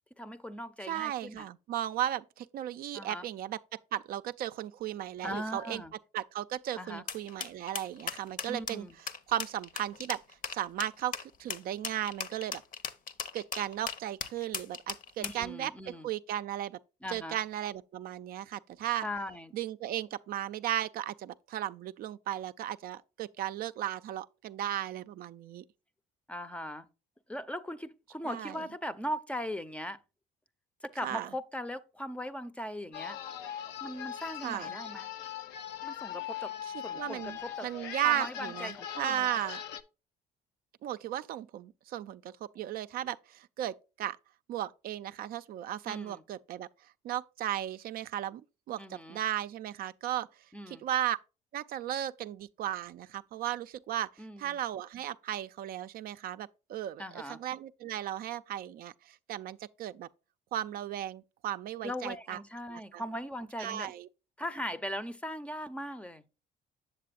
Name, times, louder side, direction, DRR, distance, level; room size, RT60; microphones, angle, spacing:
voice 1, 0.2-1.5 2.9-3.3 5.2-5.9 6.8-7.0 8.4-9.0 15.2-16.1 17.0-17.4 19.0-19.5 26.3-26.9 27.3-30.0 30.8-33.2 33.8-35.1 35.8-36.5 36.8-37.7 38.0-39.4 45.9-46.2 48.8-49.2 50.5-50.8 54.2-54.6 57.0-57.4 61.8-63.9 64.4-66.2, equal, 5° left, 0.6 m, -39 dB
voice 2, 0.9-5.8 6.1-8.9 9.3-10.2 10.5-12.6 13.3-16.8 17.1-19.1 19.5-25.6 28.2-28.6 31.0-31.3 34.4-34.7 36.6-39.6 40.8-44.2 44.5-46.7 47.0-48.4 48.7-50.3 50.7-51.2 51.5-54.1 54.4-60.1 60.5-62.4 62.7-63.0 63.6-64.1, right 12 dB, 60° right, 0.4 m, -35 dB
sound 1, 7.1-15.4, left 6 dB, 50° left, 0.9 m, -38 dB
sound 2, 32.9-39.8, left 10 dB, 85° left, 0.7 m, -40 dB
7.6 x 7.4 x 2.4 m
cardioid pair, 110°, 17 cm